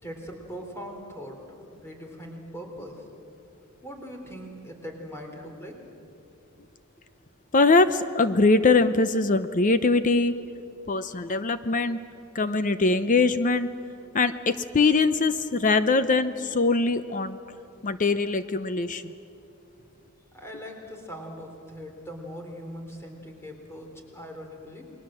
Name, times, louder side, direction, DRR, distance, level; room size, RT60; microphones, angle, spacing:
voice 1, 0.0-3.1 3.8-6.1 20.3-24.9, equal, 10° left, 2 dB, 3.7 m, -41 dB
voice 2, 7.5-10.3 10.9-12.0 12.3-13.7 14.1-17.4 17.8-19.1, left 3 dB, 35° left, 11 dB, 0.7 m, -22 dB
28.5 x 22.0 x 7.7 m, 2.7 s
head